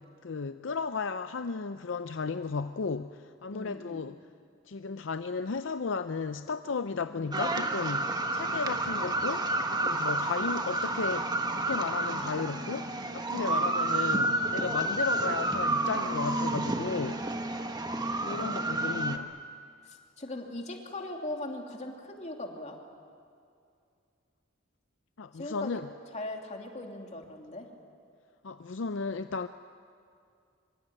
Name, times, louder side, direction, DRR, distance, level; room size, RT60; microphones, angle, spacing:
voice 1, 0.0-4.1 4.7-17.2 18.2-19.3 25.2-25.9 28.4-29.5, left 4 dB, 65° left, 10 dB, 0.6 m, -34 dB
voice 2, 3.5-4.0 7.1-7.4 13.3-13.8 18.3-18.8 19.8-22.8 25.3-25.8 26.1-27.7, left 1 dB, 35° left, 2 dB, 2.9 m, -40 dB
sound 1, 7.3-19.2, right 2 dB, 20° right, 1.3 m, -30 dB
25.0 x 24.0 x 9.0 m, 2.4 s
head